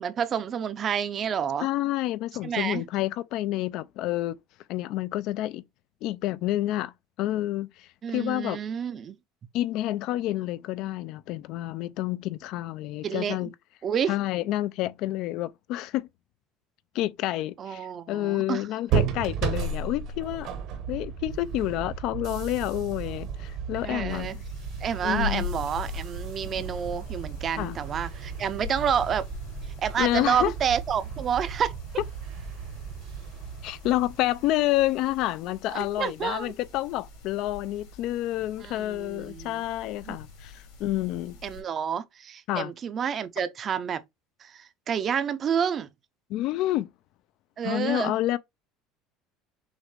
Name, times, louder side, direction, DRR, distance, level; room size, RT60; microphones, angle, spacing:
voice 1, 0.0-1.7 2.4-2.8 8.0-9.2 13.0-13.5 13.8-14.1 17.6-18.6 23.8-24.4 24.8-29.3 29.8-31.7 35.7-36.5 38.6-39.6 40.1-40.2 41.4-44.0 44.4-45.9 47.6-48.1, right 8 dB, 30° right, 0.5 m, -29 dB
voice 2, 1.6-4.4 4.7-5.6 6.0-6.9 7.2-8.6 9.5-13.5 14.1-16.1 16.9-20.5 20.9-24.4 25.0-25.5 27.6-27.8 30.0-30.5 33.6-41.4 42.5-42.7 46.3-46.9 47.6-48.4, left 15 dB, 55° left, 0.4 m, -29 dB
sound 1, 18.9-34.6, right 6 dB, 50° right, 0.9 m, -34 dB
sound 2, 24.1-41.6, left 7 dB, 75° left, 3.0 m, -42 dB
6.3 x 2.4 x 3.2 m
cardioid pair, 150°, 0 cm